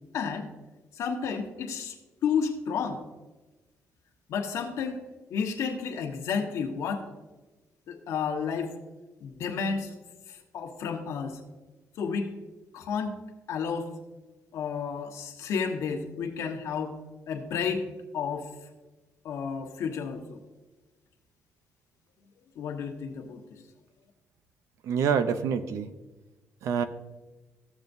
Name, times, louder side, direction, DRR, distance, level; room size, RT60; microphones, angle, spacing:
voice 1, 0.1-0.5 0.9-2.0 2.2-3.0 4.3-5.0 5.3-7.1 7.9-8.8 9.2-10.0 10.3-11.4 12.0-12.4 12.7-13.2 13.5-13.9 14.5-17.0 17.3-17.8 18.1-18.5 19.2-20.4 22.5-23.6, left 6 dB, 80° left, 4 dB, 1.2 m, -31 dB
voice 2, 24.8-25.9 26.6-26.8, right 7 dB, 80° right, 11 dB, 0.6 m, -26 dB
14.0 x 7.3 x 2.6 m, 1.2 s
cardioid pair, 140°, 5 cm